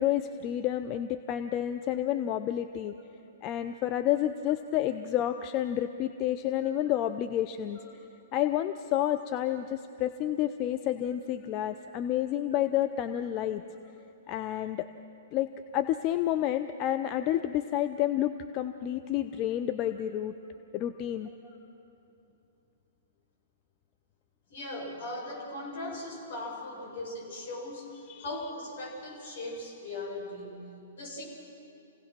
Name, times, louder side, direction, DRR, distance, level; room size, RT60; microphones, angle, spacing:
voice 1, 0.0-3.0 3.4-7.8 8.3-13.6 14.3-14.9 15.3-20.3 20.7-21.3 28.1-28.2, left 12 dB, 35° left, 9 dB, 0.7 m, -30 dB
voice 2, 24.5-30.7 30.9-31.2, left 1 dB, 65° left, -1 dB, 7.3 m, -39 dB
28.5 x 17.5 x 6.2 m, 2.9 s
hypercardioid pair, 120°, 0 cm